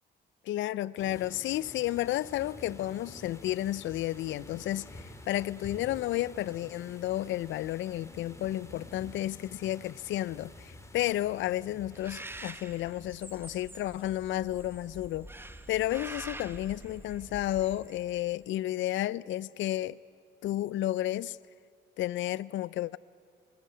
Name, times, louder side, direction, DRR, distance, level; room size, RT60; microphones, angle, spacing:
voice 1, 0.5-15.3 15.7-20.0 20.4-21.4 22.0-23.0, left 14 dB, 75° left, 0.5 m, -32 dB
sound 1, 1.0-15.5, left 1 dB, 15° left, 2.9 m, -50 dB
Bird, 11.9-18.3, right 2 dB, 10° right, 1.2 m, -46 dB
21.5 x 19.5 x 9.5 m
cardioid pair, 90°, 20 cm